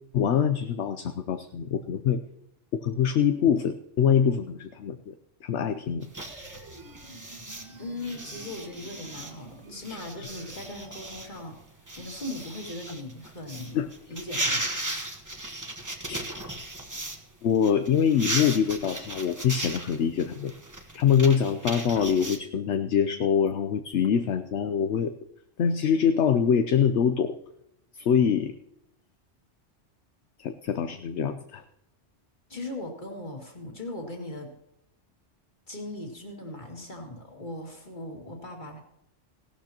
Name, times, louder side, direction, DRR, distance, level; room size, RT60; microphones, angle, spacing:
voice 1, 0.1-2.2 2.8-5.1 5.4-6.1 9.9-10.3 13.7-13.9 16.1-16.3 17.4-20.5 20.9-25.1 25.6-27.3 27.9-28.5 30.4-31.6, left 8 dB, 70° left, 9 dB, 1.0 m, -24 dB
tracing paper, 6.0-17.2 17.5-22.4, right 1 dB, 15° right, 1.1 m, -36 dB
sound 1, 6.2-11.2, right 2 dB, 70° right, 1.9 m, -49 dB
voice 2, 7.8-11.6 12.0-13.8 14.1-14.7 32.5-34.5 35.7-38.8, left 1 dB, 40° left, 1 dB, 2.5 m, -39 dB
17.0 x 12.5 x 2.9 m, 0.80 s
omnidirectional pair, 1.3 m